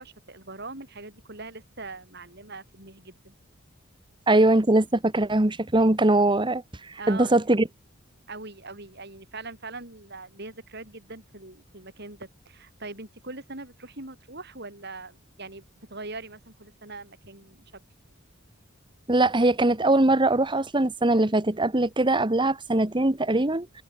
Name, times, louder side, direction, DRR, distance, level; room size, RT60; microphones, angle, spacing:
voice 1, 0.0-3.3 7.0-7.4 8.3-17.6, right 3 dB, 55° right, 8.0 m, -42 dB
voice 2, 4.3-6.6 7.1-7.7 19.1-23.7, right 2 dB, 25° right, 1.3 m, -21 dB
head